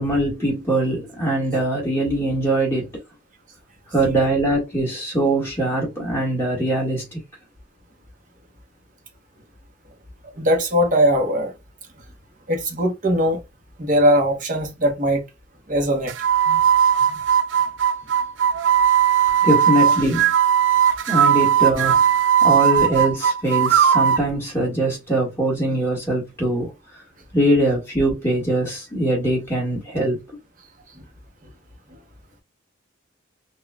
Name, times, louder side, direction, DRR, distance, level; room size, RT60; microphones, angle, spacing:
voice 1, 0.0-3.0 3.9-7.2 16.4-16.6 17.0-17.2 19.4-20.3 21.1-22.0 22.4-26.7 27.3-30.2, right 1 dB, 10° left, 1.7 m, -22 dB
voice 2, 10.4-11.5 12.5-13.4 13.8-15.2 15.7-16.1 31.0-31.1, equal, 40° right, 0.9 m, -20 dB
sound 1, 16.1-24.3, right 8 dB, 65° right, 0.4 m, -18 dB
5.8 x 2.4 x 2.2 m
head